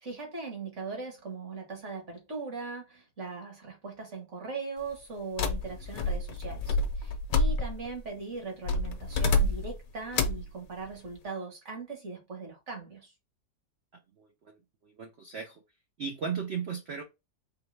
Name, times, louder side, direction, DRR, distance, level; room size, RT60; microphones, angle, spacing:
voice 1, 0.0-13.1, right 4 dB, 45° right, 1.6 m, -40 dB
sound 1, 5.4-8.0 8.7-9.8 10.1-10.5, left 3 dB, 65° left, 1.0 m, -28 dB
voice 2, 14.2-15.6 16.0-17.0, right 6 dB, 60° right, 0.6 m, -36 dB
3.8 x 3.2 x 3.3 m
omnidirectional pair, 1.8 m